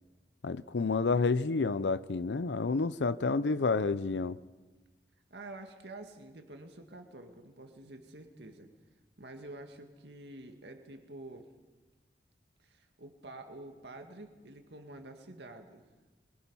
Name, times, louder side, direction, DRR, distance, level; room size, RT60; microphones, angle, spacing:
voice 1, 0.4-4.4, left 4 dB, 85° left, 0.6 m, -29 dB
voice 2, 3.2-3.6 5.3-8.7 9.2-11.5 12.6-15.8, right 2 dB, 80° right, 1.9 m, -48 dB
23.0 x 22.5 x 5.5 m
head